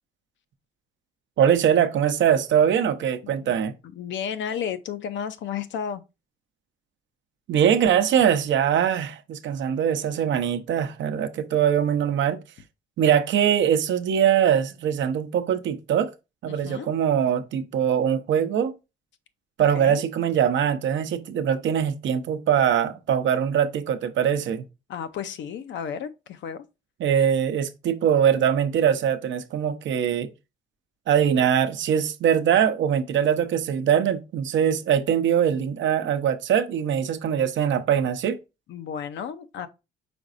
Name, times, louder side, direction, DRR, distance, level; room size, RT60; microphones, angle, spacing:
voice 1, 1.4-3.7 7.5-12.4 13.0-16.1 16.4-18.7 19.6-24.6 27.0-30.3 31.1-38.4, right 9 dB, 70° right, 0.7 m, -22 dB
voice 2, 3.2-3.5 3.8-6.0 16.5-16.9 19.7-20.0 24.9-26.6 38.7-39.7, left 8 dB, 70° left, 0.6 m, -33 dB
5.1 x 4.0 x 2.5 m
cardioid pair, 90°, 20 cm